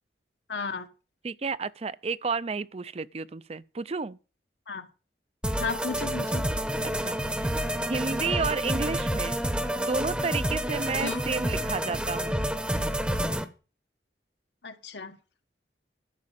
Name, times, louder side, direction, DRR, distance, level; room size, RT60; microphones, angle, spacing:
voice 1, 0.5-0.9 4.7-4.9 5.6-6.5 11.0-11.2 14.6-15.2, left 4 dB, 80° left, 1.4 m, -33 dB
voice 2, 1.2-4.2 7.0-9.4 9.8-12.4, right 4 dB, 35° right, 0.5 m, -32 dB
sound 1, 5.4-13.4, equal, 5° right, 0.8 m, -29 dB
12.0 x 6.2 x 7.3 m
head